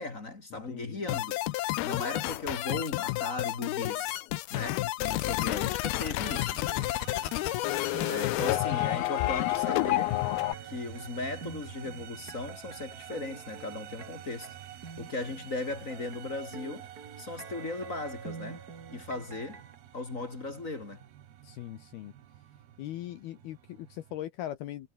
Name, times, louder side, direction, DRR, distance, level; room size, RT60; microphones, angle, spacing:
voice 1, 0.0-1.4 1.8-4.2 4.5-6.7 8.1-10.2 10.6-14.6 15.0-16.9 17.2-18.6 18.9-19.6 19.9-21.0, left 2 dB, 25° left, 2.0 m, -37 dB
voice 2, 0.5-1.0 21.4-22.1 22.8-24.9, left 13 dB, 70° left, 2.7 m, -40 dB
sound 1, 1.1-10.5, left 18 dB, 85° left, 2.2 m, -30 dB
sound 2, 6.2-24.2, right 11 dB, 60° right, 3.4 m, -48 dB
sound 3, 6.3-19.8, right 5 dB, 40° right, 1.4 m, -48 dB
omnidirectional pair, 5.4 m